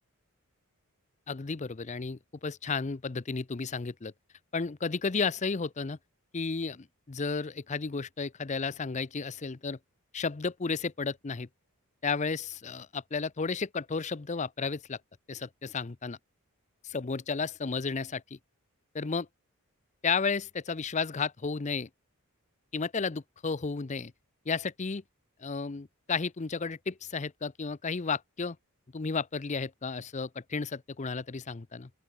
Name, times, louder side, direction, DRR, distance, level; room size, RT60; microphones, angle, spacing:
voice 1, 1.3-4.1 4.5-6.0 6.3-9.8 10.1-11.5 12.0-15.0 15.3-16.2 16.8-18.4 18.9-19.3 20.0-21.9 22.7-24.1 24.5-25.0 25.4-28.6 28.9-31.9, left 4 dB, 30° left, 0.6 m, -33 dB
open air
head